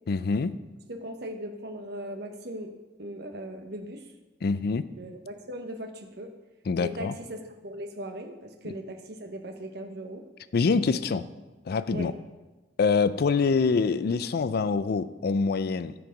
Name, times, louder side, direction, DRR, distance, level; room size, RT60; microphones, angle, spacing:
voice 1, 0.1-0.6 4.4-4.8 6.7-7.1 8.7-8.8 10.5-11.2 11.7-12.1 12.8-15.9, left 4 dB, 60° left, 14 dB, 0.4 m, -25 dB
voice 2, 0.9-2.7 3.0-4.0 4.9-6.3 6.8-10.2 11.9-12.1, right 1 dB, 65° right, 6 dB, 1.0 m, -38 dB
13.0 x 4.6 x 5.2 m, 1.2 s
head